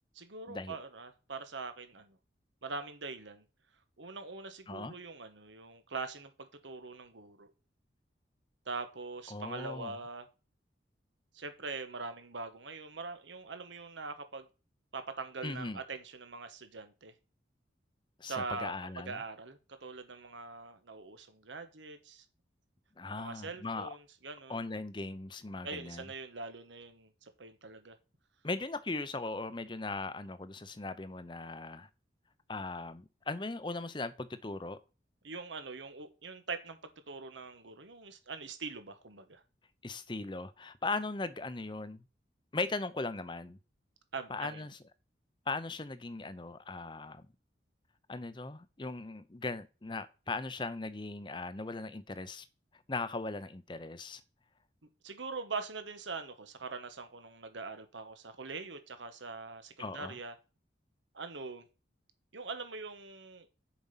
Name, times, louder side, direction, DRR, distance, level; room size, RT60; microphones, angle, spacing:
voice 1, 0.1-2.2 2.6-3.4 4.0-7.5 8.7-10.3 11.3-14.5 14.9-17.1 18.3-22.2 23.1-24.6 25.6-27.9 35.2-36.8 37.1-39.4 44.1-44.7 55.0-60.3 61.1-61.6 62.3-63.5, right 4 dB, 85° right, 1.2 m, -43 dB
voice 2, 9.3-10.0 15.4-15.8 18.2-19.2 23.0-24.0 24.5-26.1 28.4-31.9 32.5-34.8 39.8-42.0 42.5-43.6 44.3-44.8 45.5-47.2 48.1-52.5 52.9-54.2 59.8-60.2, left 3 dB, 25° left, 0.6 m, -38 dB
7.3 x 5.1 x 5.6 m
head